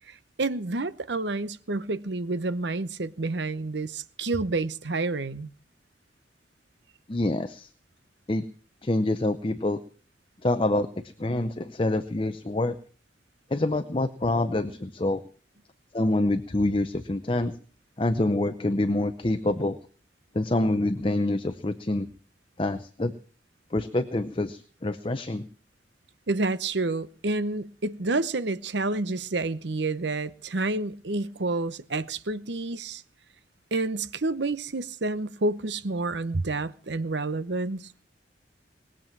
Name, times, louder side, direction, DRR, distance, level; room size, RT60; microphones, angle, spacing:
voice 1, 0.1-5.5 26.3-33.0 33.7-37.9, right 2 dB, 70° right, 0.9 m, -29 dB
voice 2, 7.1-7.7 8.3-8.4 8.8-9.8 10.4-10.9 11.2-12.8 13.5-15.2 15.9-17.5 18.0-19.8 20.3-22.1 22.6-23.1 23.7-25.4, left 2 dB, 30° left, 0.6 m, -26 dB
20.0 x 7.5 x 7.4 m
head